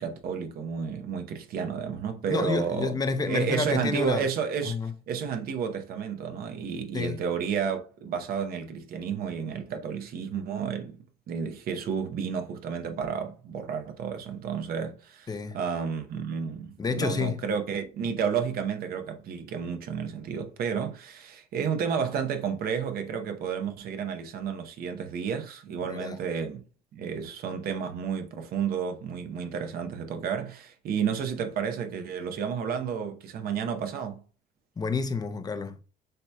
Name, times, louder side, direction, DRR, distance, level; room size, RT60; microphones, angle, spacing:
voice 1, 0.0-3.0 3.3-11.0 11.3-26.6 26.9-34.2, right 7 dB, 65° right, 0.8 m, -31 dB
voice 2, 2.3-4.2 4.6-4.9 6.9-7.3 15.3-15.6 16.8-17.4 25.8-26.2 34.8-35.8, left 4 dB, 25° left, 0.6 m, -29 dB
7.7 x 2.7 x 2.3 m
cardioid pair, 110°, 17 cm